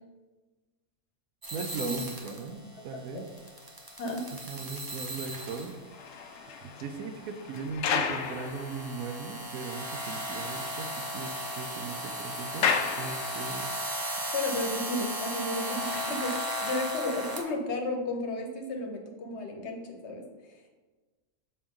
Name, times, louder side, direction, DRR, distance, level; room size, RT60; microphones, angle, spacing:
sound 1, 1.4-17.4, equal, 25° right, 0.5 m, -37 dB
voice 1, 1.5-3.3 4.4-5.8 6.6-13.7, right 4 dB, 75° right, 7 dB, 1.0 m, -38 dB
sound 2, 5.7-9.4 9.7-9.8 10.2-10.3 10.5-13.8 14.5-14.7, left 6 dB, 65° left, 0.7 m, -34 dB
voice 2, 14.3-20.2 20.5-20.6, left 2 dB, 50° left, 2 dB, 1.1 m, -33 dB
7.0 x 4.5 x 3.7 m, 1.3 s
omnidirectional pair, 1.6 m